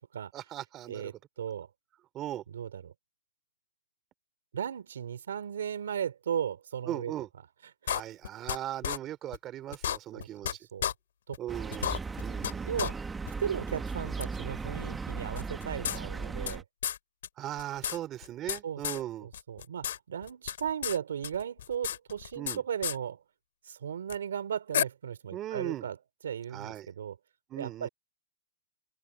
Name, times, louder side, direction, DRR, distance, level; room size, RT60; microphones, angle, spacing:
voice 1, 0.3-1.1 2.1-2.4 6.9-7.3 7.9-10.6 11.4-11.9 12.2-12.7 17.4-19.3 22.4-22.6 25.3-25.9 26.5-26.9 27.5-27.9, right 12 dB, 25° right, 3.1 m, -38 dB
voice 2, 0.9-1.7 2.5-2.9 4.5-7.1 7.8-8.0 10.1-10.9 11.3-11.4 12.6-13.0 13.4-16.6 18.6-23.2 23.7-26.0 26.2-27.2 27.6-27.9, right 8 dB, 80° right, 3.1 m, -36 dB
sound 1, 7.9-8.6 8.8-9.0 9.3-9.4 9.7-10.5 10.8-10.9 11.3-11.4 11.7-12.5 12.8-12.9 13.3-13.4 14.2-14.3 15.3-16.5 16.8-17.0 17.2-17.3 17.6-18.6 18.8-19.0 19.3-20.0 20.2-21.0 21.2-22.6 22.8-23.0 24.1-24.2 24.7-24.8, left 10 dB, 75° left, 2.7 m, -32 dB
sound 2, 11.5-16.6, right 4 dB, 10° right, 1.9 m, -37 dB
open air
hypercardioid pair, 135°, 0 cm